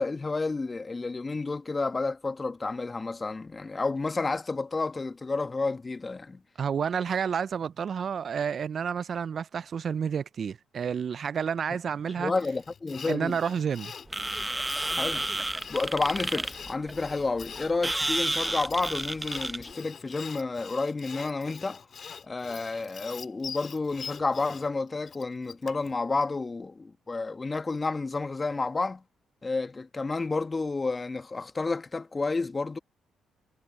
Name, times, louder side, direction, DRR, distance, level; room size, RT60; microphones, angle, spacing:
voice 1, 0.0-6.4 12.2-13.4 15.0-15.3 15.7-21.8 22.2-29.0 29.4-32.8, left 3 dB, 30° left, 1.6 m, -30 dB
voice 2, 6.6-12.3 13.1-13.9, right 7 dB, 55° right, 0.5 m, -30 dB
Sawing, 12.4-25.9, left 6 dB, 55° left, 2.0 m, -44 dB
sound 1, 14.1-19.7, right 1 dB, 15° right, 1.0 m, -31 dB
hypercardioid pair, 50°, 0 cm